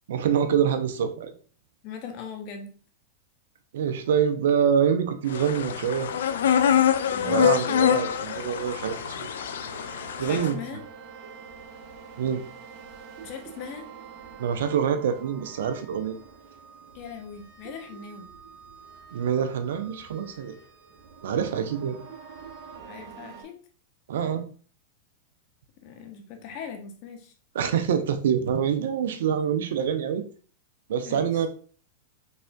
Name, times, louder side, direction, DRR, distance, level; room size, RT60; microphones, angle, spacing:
voice 1, 0.1-1.3 3.7-6.1 7.2-9.3 10.2-10.6 12.2-12.4 14.4-16.2 19.1-20.5 21.2-22.0 24.1-24.5 27.5-30.2 30.9-31.5, right 8 dB, 70° right, 8 dB, 0.5 m, -25 dB
voice 2, 1.8-2.7 7.1-7.6 10.2-10.8 13.2-13.8 16.9-18.3 22.8-23.6 25.8-27.3 31.0-31.3, left 6 dB, 50° left, 4 dB, 0.9 m, -40 dB
sound 1, 5.3-10.5, left 9 dB, 75° left, 0.3 m, -25 dB
sound 2, 7.3-23.4, right 6 dB, 50° right, 1.0 m, -46 dB
4.2 x 3.6 x 2.3 m, 0.42 s
hypercardioid pair, 105°, 0 cm